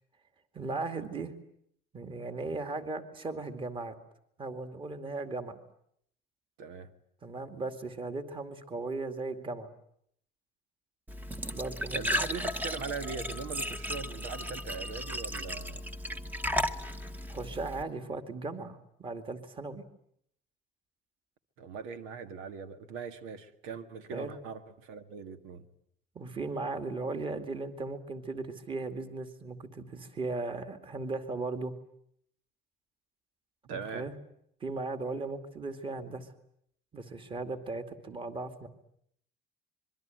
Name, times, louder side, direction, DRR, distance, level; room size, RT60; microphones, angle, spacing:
voice 1, 0.5-1.3 1.9-3.9 4.4-5.6 7.2-9.7 11.5-12.2 17.3-19.8 24.1-24.3 26.1-31.7 33.7-34.1 34.6-36.3 36.9-38.7, right 3 dB, 25° right, 7 dB, 2.4 m, -37 dB
voice 2, 6.6-6.9 11.9-15.9 21.6-25.7 33.6-34.1, right 5 dB, 80° right, 10 dB, 1.9 m, -41 dB
Glass / Trickle dribble / Fill (with liquid), 11.1-17.8, equal, 10° right, 1.1 m, -35 dB
26.0 x 23.0 x 9.2 m, 0.69 s
cardioid pair, 155°, 21 cm